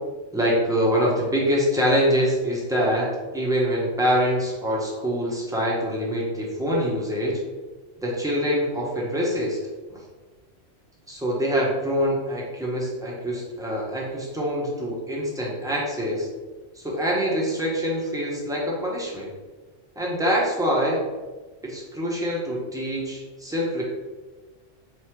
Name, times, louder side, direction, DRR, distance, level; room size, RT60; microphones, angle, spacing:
voice 1, 0.3-7.4 8.0-9.6 9.9-10.0 11.1-16.3 16.7-19.3 20.0-21.0 21.6-23.8, equal, 5° right, -4 dB, 0.7 m, -25 dB
3.1 x 2.7 x 4.5 m, 1.3 s
omnidirectional pair, 1.3 m